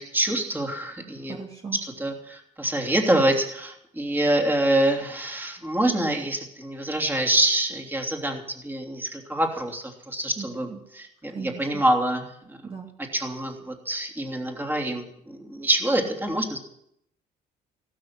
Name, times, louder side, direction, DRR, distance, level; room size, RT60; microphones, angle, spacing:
voice 1, 0.0-1.4 1.8-12.6 13.0-16.6, right 1 dB, 10° right, 2 dB, 3.1 m, -26 dB
voice 2, 1.4-1.8 10.4-10.8 11.3-11.8 12.7-12.9, right 5 dB, 30° right, 0 dB, 2.3 m, -38 dB
16.0 x 12.5 x 6.1 m, 0.73 s
cardioid pair, 110°, 17 cm